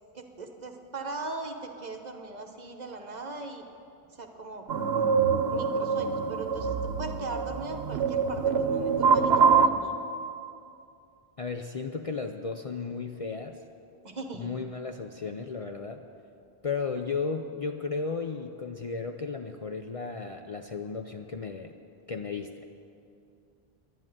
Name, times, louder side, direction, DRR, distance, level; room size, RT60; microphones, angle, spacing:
voice 1, 0.1-3.7 4.1-9.9 14.0-14.5, right 3 dB, 45° right, 5 dB, 1.1 m, -40 dB
sound 1, 4.7-9.7, right 5 dB, 80° right, 1.0 m, -25 dB
voice 2, 11.4-13.6 14.4-16.0 16.6-21.7 22.1-22.6, left 4 dB, 40° left, 5 dB, 0.5 m, -34 dB
11.0 x 11.0 x 9.0 m, 2.6 s
omnidirectional pair, 1.0 m